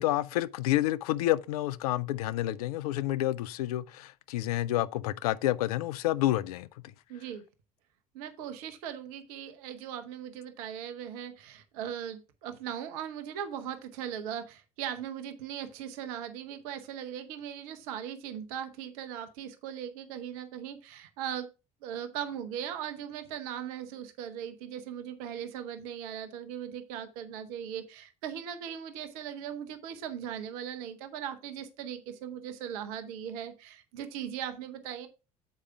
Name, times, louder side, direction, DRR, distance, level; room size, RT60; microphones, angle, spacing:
voice 1, 0.0-6.7, left 15 dB, 75° left, 0.5 m, -29 dB
voice 2, 7.1-7.4 8.1-21.5 21.8-35.1, right 9 dB, 70° right, 0.9 m, -39 dB
7.4 x 4.9 x 4.6 m
hypercardioid pair, 60°, 19 cm